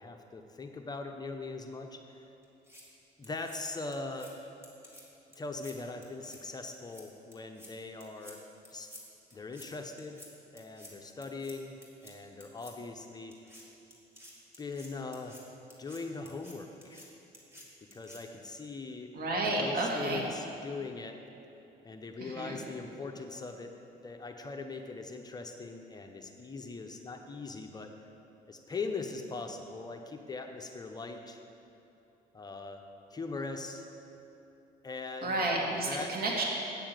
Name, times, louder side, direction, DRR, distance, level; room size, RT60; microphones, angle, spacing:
voice 1, 0.0-2.2 3.2-4.3 5.4-8.4 8.7-8.9 9.3-10.2 10.5-11.8 12.0-13.3 14.6-15.4 15.8-17.0 17.8-19.1 19.6-21.2 21.8-23.7 24.0-27.9 28.5-31.4 32.3-32.8 33.1-33.9 34.8-35.4 35.8-36.1, left 3 dB, 25° left, 4 dB, 0.8 m, -40 dB
sound 1, 2.4-2.8 3.2-3.6 3.9-4.3 4.6-5.0 5.3-5.7 6.0-6.4 6.7-7.0 7.3-7.7 8.0-8.3 8.6-9.0 9.3-9.7 10.0-10.3 10.6-10.9 11.2-11.5 11.8-12.1 12.4-12.7 13.3-13.6 13.9-15.4 15.7-16.0 16.3-16.5 16.8-17.1 17.3-17.6 17.9-18.2, equal, 15° right, 2.2 m, -52 dB
voice 2, 19.1-20.2 22.2-22.5 35.2-36.4, right 2 dB, 60° right, -2 dB, 2.3 m, -31 dB
8.9 x 7.0 x 7.7 m, 2.9 s
cardioid pair, 110°, 17 cm